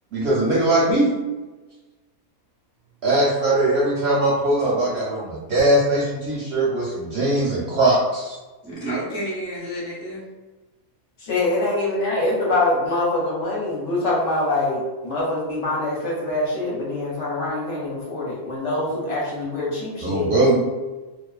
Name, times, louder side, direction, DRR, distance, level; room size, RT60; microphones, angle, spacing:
voice 1, 0.1-1.1 3.0-8.4 20.0-20.5, right 1 dB, 65° right, -5 dB, 0.7 m, -20 dB
voice 2, 8.6-10.2 12.1-12.2, right 1 dB, 20° right, -7 dB, 0.3 m, -30 dB
voice 3, 11.3-20.3, left 2 dB, 60° left, -5 dB, 0.9 m, -24 dB
2.5 x 2.3 x 2.2 m, 1.2 s
omnidirectional pair, 1.5 m